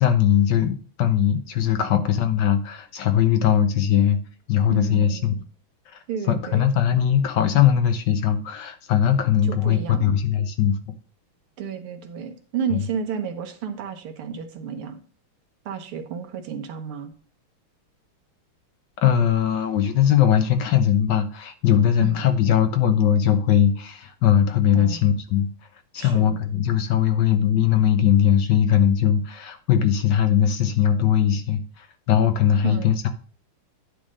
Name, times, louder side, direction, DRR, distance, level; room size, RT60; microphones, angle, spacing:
voice 1, 0.0-4.2 4.5-5.3 6.3-10.8 12.7-12.8 19.0-25.5 25.9-33.1, left 9 dB, 65° left, 1.2 m, -20 dB
voice 2, 4.7-5.4 6.1-6.7 9.4-10.2 11.6-15.0 15.7-17.1 22.0-22.2 24.7-25.1 26.0-26.4 32.6-32.9, right 7 dB, 80° right, 2.0 m, -32 dB
9.8 x 3.4 x 6.2 m
omnidirectional pair, 2.3 m